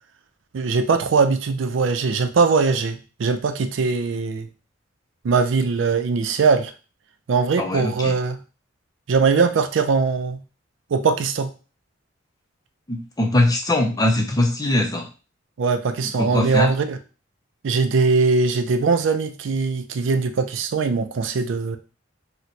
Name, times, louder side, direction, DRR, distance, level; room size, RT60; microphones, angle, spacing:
voice 1, 0.5-4.5 5.2-6.7 7.3-8.4 9.1-10.4 10.9-11.5 15.6-17.0 17.6-21.8, right 4 dB, 70° right, 9 dB, 0.4 m, -21 dB
voice 2, 7.6-8.2 12.9-15.1 16.2-16.7, left 1 dB, 20° left, 3 dB, 0.5 m, -21 dB
3.0 x 2.1 x 4.0 m, 0.34 s
head